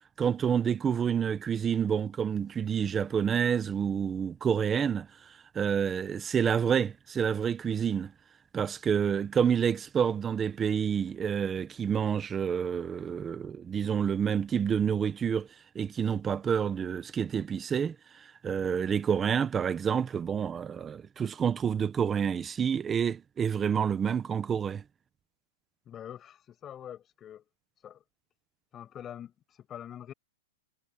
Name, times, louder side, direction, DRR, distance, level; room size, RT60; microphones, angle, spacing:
voice 1, 0.2-8.1 8.5-15.5 15.7-24.8, right 7 dB, 10° right, 1.1 m, -28 dB
voice 2, 25.9-27.4 27.8-28.0 28.7-30.1, left 10 dB, 15° left, 6.3 m, -45 dB
hypercardioid pair, 170°, 0 cm